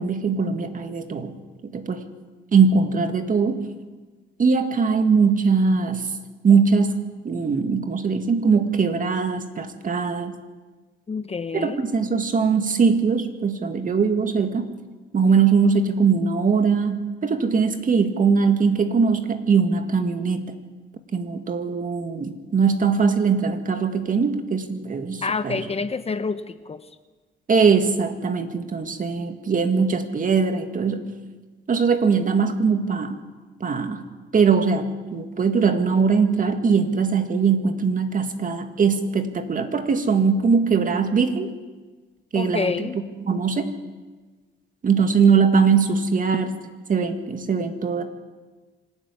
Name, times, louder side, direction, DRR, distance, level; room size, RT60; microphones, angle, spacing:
voice 1, 0.0-1.4 1.6-2.0 2.5-3.7 4.4-6.1 6.4-6.9 7.2-10.4 11.5-14.7 15.1-20.5 21.1-25.6 27.5-31.1 31.7-33.2 33.6-34.0 34.3-41.5 42.3-42.7 43.2-43.7 44.8-46.5 46.9-48.0, right 5 dB, 40° right, 7 dB, 2.1 m, -21 dB
voice 2, 11.1-11.8 25.2-26.8 42.3-43.0, left 4 dB, 30° left, 11 dB, 1.0 m, -27 dB
25.5 x 11.0 x 9.8 m, 1.3 s
cardioid pair, 90°, 20 cm